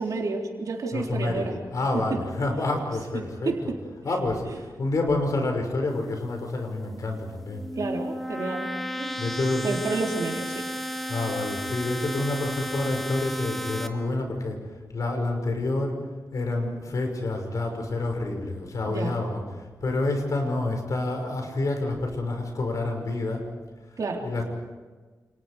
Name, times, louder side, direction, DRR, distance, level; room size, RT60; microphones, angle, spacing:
voice 1, 0.0-1.6 1.9-2.2 3.1-3.8 7.8-8.7 9.0-9.3 9.6-10.7 18.9-19.2 24.0-24.3, right 3 dB, 60° right, 0 dB, 3.5 m, -30 dB
voice 2, 0.9-3.7 4.0-7.7 9.2-9.7 11.1-14.6 14.9-15.9 16.3-19.4 19.8-23.4 24.2-24.4, left 2 dB, 55° left, 3 dB, 5.9 m, -28 dB
sound 1, 7.4-13.9, equal, ahead, 1.8 m, -33 dB
29.5 x 29.0 x 5.0 m, 1.4 s
wide cardioid pair, 160°, 7 cm